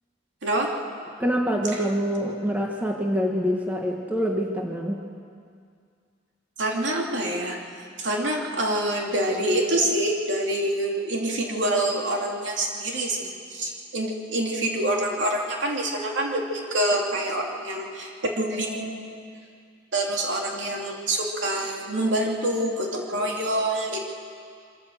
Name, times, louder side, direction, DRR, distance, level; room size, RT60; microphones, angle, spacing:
voice 1, 1.2-5.0, equal, 10° right, 0 dB, 1.4 m, -25 dB
voice 2, 6.6-19.2 19.9-24.1, right 1 dB, 75° right, 0 dB, 2.9 m, -26 dB
24.5 x 14.0 x 7.9 m, 2.3 s
head